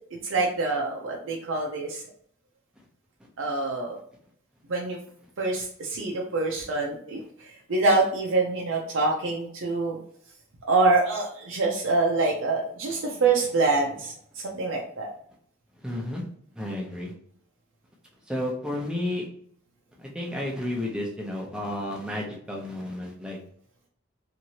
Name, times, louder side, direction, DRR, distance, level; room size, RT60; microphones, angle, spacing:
voice 1, 0.2-2.0 3.4-4.0 4.7-5.0 5.4-10.0 10.7-15.1, right 3 dB, 80° right, -1 dB, 0.5 m, -25 dB
voice 2, 15.8-16.2 16.6-17.1 18.3-19.3 20.0-23.4, left 1 dB, 5° right, -2 dB, 0.6 m, -32 dB
2.9 x 2.6 x 2.8 m, 0.64 s
head